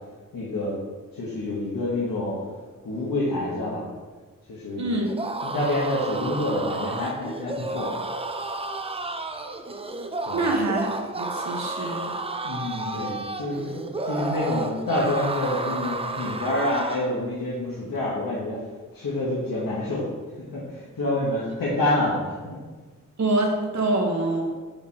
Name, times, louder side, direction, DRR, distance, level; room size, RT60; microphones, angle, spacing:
voice 1, 0.3-0.7 1.1-2.4 2.8-3.8 4.5-4.9 5.4-7.9 10.2-10.4 12.4-18.6 18.9-20.1 20.4-22.6, left 1 dB, 75° left, -7 dB, 1.5 m, -27 dB
voice 2, 4.8-5.1 10.3-12.2 23.2-24.6, right 2 dB, 55° right, 1 dB, 1.1 m, -25 dB
sound 1, 5.0-17.1, right 2 dB, 20° right, 0.3 m, -32 dB
6.9 x 4.4 x 4.7 m, 1.4 s
wide cardioid pair, 175°, 34 cm